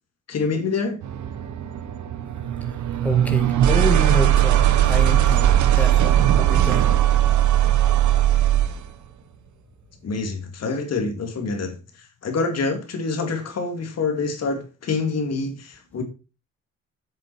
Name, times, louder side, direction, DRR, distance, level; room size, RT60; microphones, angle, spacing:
voice 1, 0.3-1.0 10.0-16.0, left 4 dB, 55° left, 2.4 m, -26 dB
sound 1, 1.0-8.9, right 12 dB, 75° right, 1.2 m, -19 dB
voice 2, 3.0-6.9, left 1 dB, 5° left, 2.0 m, -28 dB
8.2 x 7.4 x 4.6 m
cardioid pair, 90°, 30 cm